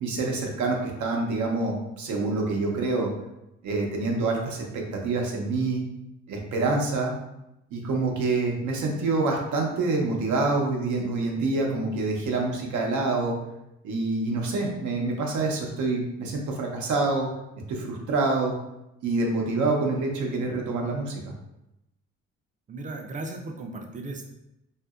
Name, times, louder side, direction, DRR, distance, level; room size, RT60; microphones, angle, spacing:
voice 1, 0.0-3.1 3.6-5.8 6.3-7.1 7.7-13.4 13.8-17.3 17.7-18.5 19.0-21.1, right 3 dB, 75° right, 1 dB, 0.7 m, -26 dB
voice 2, 22.7-24.2, right 2 dB, 25° right, 3 dB, 0.4 m, -36 dB
2.7 x 2.5 x 2.4 m, 0.88 s
cardioid pair, 90°, 30 cm